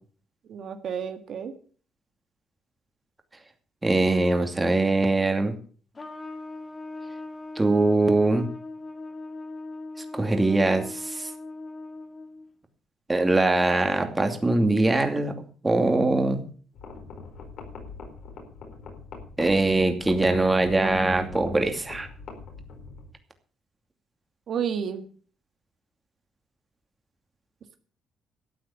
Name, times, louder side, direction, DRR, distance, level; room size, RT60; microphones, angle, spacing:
voice 1, 0.5-1.5 24.5-25.0, right 7 dB, 65° right, 7 dB, 1.7 m, -31 dB
voice 2, 3.8-5.5 7.6-8.5 10.1-11.3 13.1-15.3 15.6-16.4 19.4-22.1, right 2 dB, 15° right, 5 dB, 2.6 m, -22 dB
Trumpet, 5.9-12.5, left 2 dB, 30° left, 2.6 m, -39 dB
sound 1, 16.7-23.1, left 4 dB, 70° left, 4.6 m, -41 dB
13.0 x 8.7 x 7.1 m, 0.43 s
cardioid pair, 90°, 0 cm